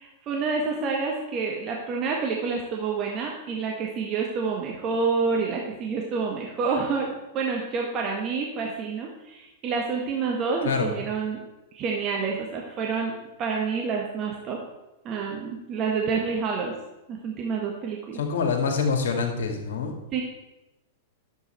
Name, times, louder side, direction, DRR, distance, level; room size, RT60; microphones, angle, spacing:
voice 1, 0.0-11.4 11.7-14.6 15.0-16.7 17.1-18.2 20.1-20.2, right 5 dB, 35° right, 0 dB, 1.4 m, -28 dB
voice 2, 18.2-19.9, left 5 dB, 65° left, 3 dB, 2.1 m, -25 dB
11.0 x 7.5 x 4.4 m, 1.0 s
figure-of-eight pair, 100°, 0 cm